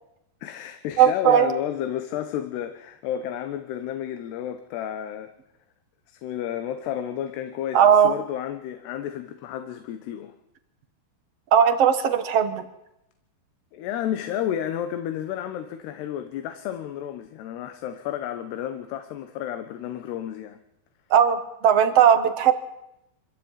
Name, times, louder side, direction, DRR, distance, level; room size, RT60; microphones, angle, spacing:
voice 1, 0.4-5.3 6.1-10.3 13.7-20.6, left 10 dB, 80° left, 8 dB, 3.2 m, -31 dB
voice 2, 1.0-1.5 7.7-8.1 11.5-12.7 21.1-22.5, right 8 dB, 60° right, 8 dB, 1.7 m, -18 dB
25.0 x 15.0 x 9.1 m, 0.86 s
omnidirectional pair, 4.8 m